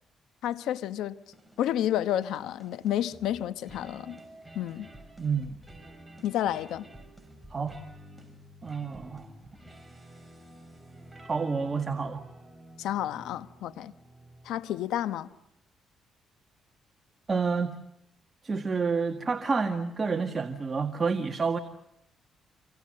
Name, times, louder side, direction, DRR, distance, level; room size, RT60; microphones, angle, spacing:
voice 1, 0.4-1.2 1.6-4.2 4.5-4.9 6.2-6.9 12.8-13.9 14.4-15.3, left 11 dB, 85° left, 1.0 m, -30 dB
sound 1, 1.3-14.8, right 1 dB, 5° right, 6.6 m, -51 dB
voice 2, 5.2-5.6 7.5-7.8 8.6-9.3 11.3-12.2 17.3-17.7 18.4-21.6, right 5 dB, 30° right, 1.8 m, -29 dB
27.0 x 26.5 x 7.8 m
cardioid pair, 90°, 0 cm